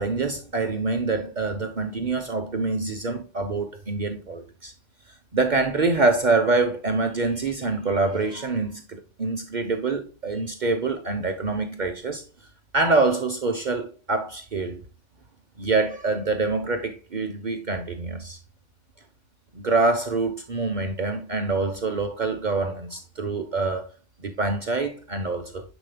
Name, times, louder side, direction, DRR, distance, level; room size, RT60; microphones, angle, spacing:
voice 1, 0.0-4.7 5.1-12.2 12.7-14.8 15.6-18.4 19.5-23.9 24.2-25.6, right 3 dB, 50° right, 1.0 m, -25 dB
10.0 x 5.0 x 2.2 m
omnidirectional pair, 1.0 m